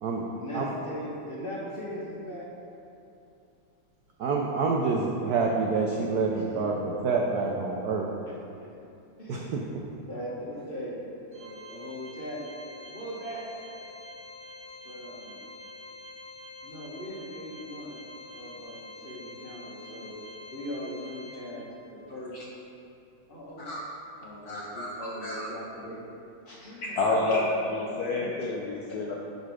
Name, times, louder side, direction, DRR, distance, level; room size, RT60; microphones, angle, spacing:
voice 1, 0.3-2.5 4.5-4.6 4.9-5.0 6.3-6.6 8.3-8.8 9.2-9.8 10.1-12.4 12.8-13.5 14.8-15.4 16.6-18.0 18.3-20.1 20.5-22.5 23.3-23.7 24.2-26.0 26.6-28.3, equal, 30° left, -5 dB, 1.4 m, -40 dB
voice 2, 4.2-8.1 9.3-9.7, right 4 dB, 90° right, 0 dB, 0.8 m, -27 dB
Organ, 11.3-22.0, left 2 dB, 50° right, 0.9 m, -46 dB
voice 3, 24.5-25.5 26.5-29.1, left 2 dB, 70° left, -2 dB, 0.9 m, -30 dB
10.5 x 4.2 x 4.8 m, 2.7 s
omnidirectional pair, 2.4 m